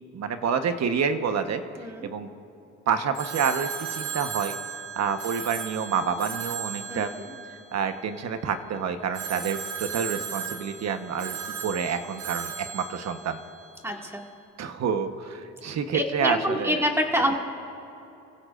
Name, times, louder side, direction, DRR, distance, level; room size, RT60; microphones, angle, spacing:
voice 1, 0.1-1.6 2.0-2.3 2.9-7.1 7.7-13.4 14.6-16.8, right 6 dB, 60° right, 7 dB, 1.2 m, -28 dB
voice 2, 1.8-2.1 6.9-7.3 13.8-14.2 15.9-17.4, equal, 10° right, 1 dB, 2.1 m, -27 dB
Telephone, 3.1-8.4 9.1-14.0, right 8 dB, 85° right, 2.2 m, -36 dB
30.0 x 16.0 x 2.6 m, 3.0 s
cardioid pair, 90°, 30 cm